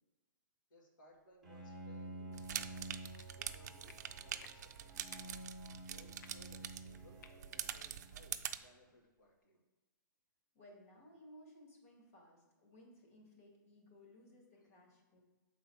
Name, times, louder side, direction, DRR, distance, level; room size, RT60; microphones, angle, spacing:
voice 1, 0.7-5.1 5.8-9.6, left 1 dB, 80° left, -2 dB, 2.1 m, -64 dB
Bowed string instrument, 1.4-8.5, right 2 dB, ahead, 1.0 m, -51 dB
sound 1, 2.3-8.6, right 9 dB, 55° right, 0.4 m, -45 dB
sound 2, 3.2-3.3 3.9-4.0 4.4-4.5 5.1-5.3 6.2-6.3 7.2-7.3 7.7-7.9, left 6 dB, 60° left, 0.6 m, -58 dB
voice 2, 10.5-15.2, left 1 dB, 45° left, 0 dB, 1.9 m, -60 dB
6.7 x 3.9 x 4.6 m, 1.2 s
hypercardioid pair, 170°, 11 cm